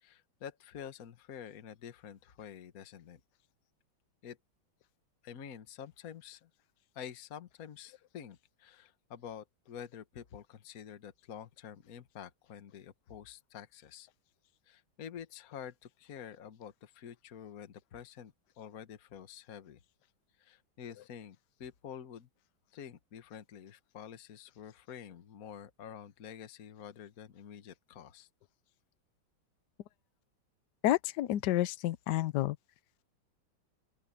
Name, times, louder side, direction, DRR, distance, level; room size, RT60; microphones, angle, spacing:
voice 1, 0.0-3.2 4.2-4.4 5.2-6.5 6.9-14.1 14.7-19.8 20.4-22.3 22.7-28.3, left 8 dB, 50° left, 1.5 m, -48 dB
voice 2, 30.8-32.6, left 14 dB, 70° left, 1.1 m, -30 dB
open air
omnidirectional pair, 2.3 m